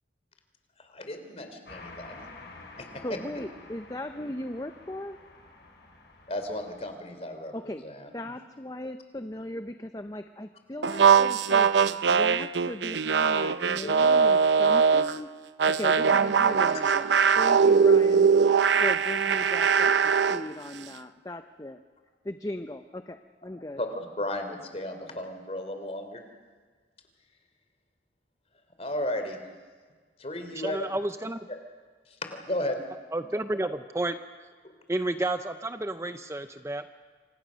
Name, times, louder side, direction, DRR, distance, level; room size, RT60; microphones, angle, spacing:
voice 1, 0.8-2.2 2.8-3.0 6.3-8.1 13.8-13.9 18.6-18.7 23.8-26.2 28.8-29.4 30.2-30.9 31.5-31.6 32.1-32.8, left 1 dB, 35° left, 6 dB, 3.2 m, -34 dB
sound 1, 1.6-6.9, left 2 dB, 75° left, 5.1 m, -49 dB
voice 2, 3.0-5.2 7.5-7.8 8.1-11.7 12.1-15.3 15.6-18.3 18.8-21.8 22.2-23.8, left 1 dB, 20° left, 8 dB, 0.7 m, -37 dB
sound 2, 10.8-15.2 15.6-20.4, right 6 dB, 90° right, 0.7 m, -21 dB
voice 3, 30.5-31.5 33.1-34.2 34.9-36.9, right 2 dB, 15° right, 9 dB, 0.6 m, -31 dB
27.5 x 25.5 x 6.4 m, 1.5 s
head